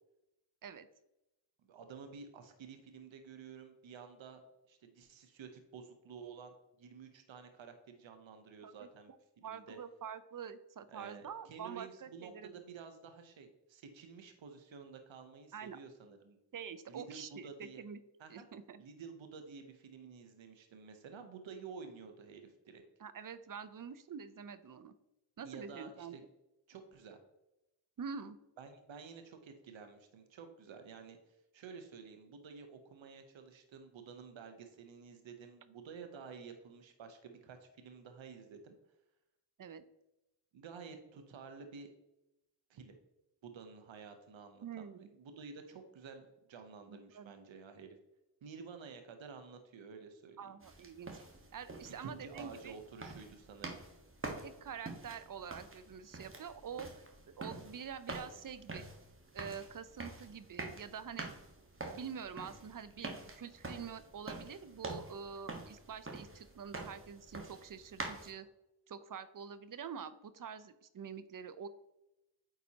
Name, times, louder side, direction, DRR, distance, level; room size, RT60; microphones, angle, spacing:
voice 1, 1.7-4.4 4.7-9.8 10.9-16.4 16.9-17.8 18.2-18.5 18.8-22.8 25.4-26.2 26.7-27.2 28.6-31.2 31.5-38.8 40.5-41.9 42.7-43.0 43.4-47.9 48.4-50.5 52.0-53.8, right 5 dB, 75° right, 7 dB, 0.9 m, -51 dB
voice 2, 9.4-12.5 15.5-15.8 16.5-18.0 18.3-18.8 23.0-24.9 25.4-26.2 28.0-28.4 39.6-39.8 44.6-45.1 46.9-47.3 50.4-51.1 51.5-52.8 54.4-56.9 57.4-58.9 59.3-61.3 61.9-68.5 68.9-71.7, right 7 dB, 45° right, 13 dB, 0.6 m, -46 dB
sound 1, 50.6-68.3, right 2 dB, 25° right, 1.4 m, -47 dB
8.8 x 4.1 x 2.8 m, 0.92 s
cardioid pair, 50°, 46 cm